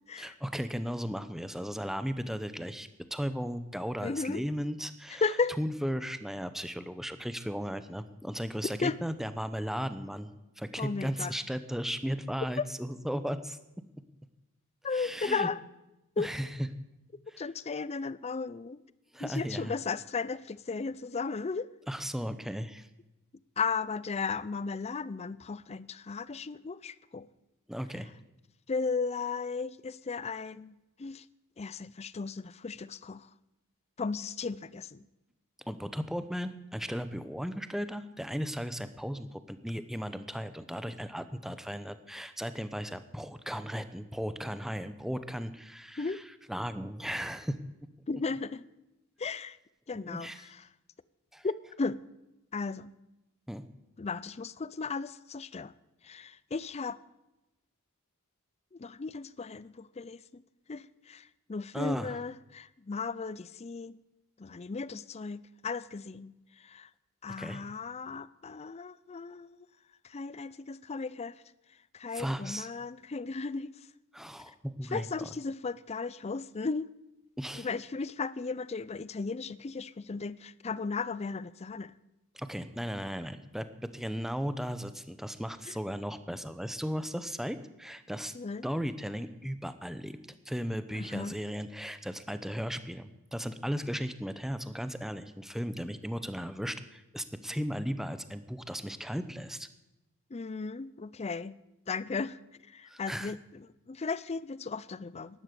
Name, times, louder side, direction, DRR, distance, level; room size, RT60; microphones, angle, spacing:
voice 1, 0.2-5.2 5.6-13.6 14.9-15.5 16.2-16.5 17.3-17.4 19.1-19.7 21.9-22.9 27.7-28.1 35.7-46.2 46.5-47.6 49.9-50.4 51.3-51.5 53.5-53.6 61.7-62.2 67.4-67.6 72.1-72.7 74.1-75.3 77.4-77.7 82.3-88.3 88.6-90.2 90.4-99.7 102.9-103.3, equal, ahead, 0.8 m, -36 dB
voice 2, 4.0-4.4 5.2-5.6 8.8-9.0 10.8-11.3 12.6-12.7 14.8-15.6 16.2-16.3 17.3-18.8 19.2-21.7 23.6-27.3 28.7-31.3 31.6-33.3 34.0-35.0 46.0-46.2 48.1-48.7 49.2-49.6 49.9-50.6 51.4-52.0 52.5-52.9 54.0-55.7 56.0-57.0 58.7-60.4 60.7-64.0 64.4-66.9 67.2-69.7 70.0-71.4 71.9-73.7 74.9-76.9 77.6-82.0 85.7-85.8 88.3-88.7 90.9-91.4 100.3-101.6 101.9-105.4, left 4 dB, 30° left, 0.5 m, -35 dB
12.0 x 11.5 x 8.3 m
head